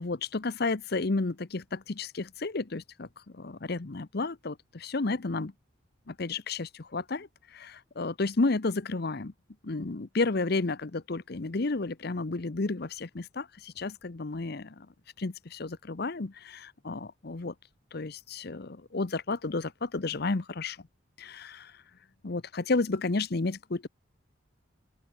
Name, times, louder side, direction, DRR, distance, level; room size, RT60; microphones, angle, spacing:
voice 1, 0.0-3.1 3.3-5.5 6.1-9.3 9.6-14.9 15.2-17.5 17.9-20.8 21.2-21.7 22.2-23.9, left 3 dB, 55° left, 0.8 m, -32 dB
open air
head